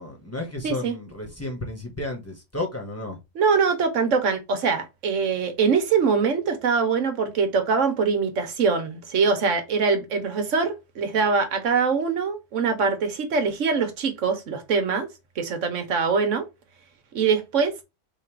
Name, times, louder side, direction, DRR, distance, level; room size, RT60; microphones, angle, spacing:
voice 1, 0.0-3.2, left 2 dB, 10° left, 1.0 m, -32 dB
voice 2, 0.6-0.9 3.3-15.1 15.4-16.5 17.1-17.7, right 5 dB, 70° right, 1.2 m, -23 dB
3.6 x 2.5 x 4.5 m
omnidirectional pair, 1.4 m